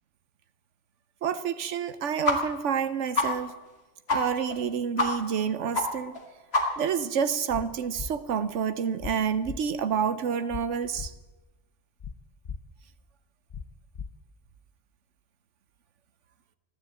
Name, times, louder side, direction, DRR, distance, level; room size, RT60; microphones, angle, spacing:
voice 1, 1.2-3.6 4.1-6.2 6.8-11.1, right 7 dB, 85° right, 12 dB, 1.1 m, -28 dB
sound 1, 2.2-2.4 2.7-2.8 3.1-3.3 3.7-3.8 4.1-4.2 4.5-4.6 5.0-5.1 5.4-5.5 5.7-5.8 6.1-6.2 6.5-6.9, left 2 dB, 60° left, 2.3 m, -25 dB
sound 2, 7.5-7.6 7.9-8.1 9.0-9.1 9.4-9.6 10.5-10.6 10.9-11.1 12.0-12.1 12.4-12.6 13.5-13.6 13.9-14.1, left 6 dB, 40° left, 0.7 m, -36 dB
15.0 x 11.0 x 8.2 m, 1.1 s
omnidirectional pair, 1.2 m